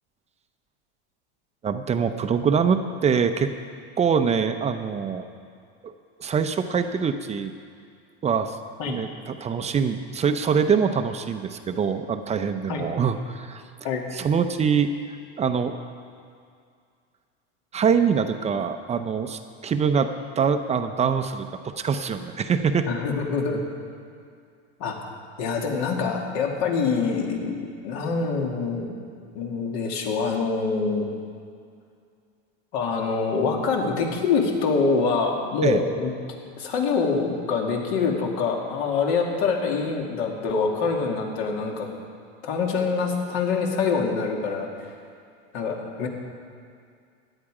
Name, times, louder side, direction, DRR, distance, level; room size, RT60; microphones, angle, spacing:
voice 1, 1.6-3.5 4.0-5.2 5.8-5.9 6.2-7.5 8.2-8.6 8.9-13.6 14.1-14.9 15.4-15.7 17.7-22.9 35.6-35.8, right 6 dB, 20° right, 8 dB, 0.6 m, -24 dB
voice 2, 22.9-23.6 24.8-25.0 25.4-28.9 29.3-31.1 32.7-36.1 36.6-41.9 42.4-44.9 45.5-46.1, left 4 dB, 65° left, 1 dB, 2.5 m, -25 dB
17.0 x 10.5 x 4.9 m, 2.3 s
supercardioid pair, 135°, 33 cm